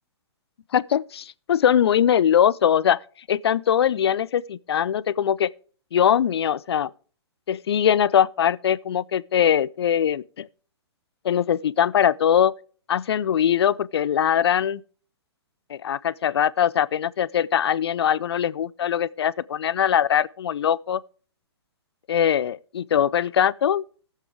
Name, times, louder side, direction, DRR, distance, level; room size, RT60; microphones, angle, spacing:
voice 1, 0.7-3.0 3.3-5.5 5.9-6.9 7.5-10.5 11.2-12.5 12.9-14.8 15.7-21.0 22.1-23.8, left 9 dB, 65° left, 0.5 m, -21 dB
18.5 x 7.4 x 3.5 m
figure-of-eight pair, 125°, 14 cm